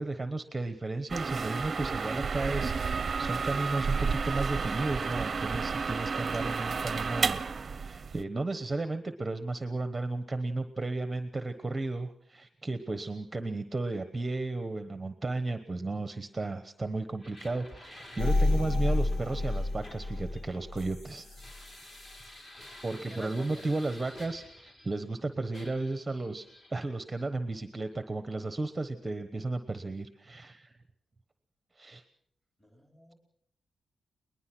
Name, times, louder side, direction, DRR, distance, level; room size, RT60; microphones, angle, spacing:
voice 1, 0.0-21.4 22.8-30.7 31.8-32.0, right 2 dB, 15° right, 9 dB, 1.1 m, -34 dB
sound 1, 1.1-8.2, right 5 dB, 35° right, 0.8 m, -31 dB
sound 2, 17.2-25.2 25.5-26.7, left 1 dB, 35° left, 3.7 m, -52 dB
sound 3, 18.2-21.0 21.5-21.6, left 2 dB, 85° left, 2.8 m, -29 dB
voice 2, 23.1-23.5 32.6-33.1, equal, 10° left, 3 dB, 4.6 m, -47 dB
22.0 x 20.5 x 6.1 m, 0.66 s
wide cardioid pair, 135°, 0 cm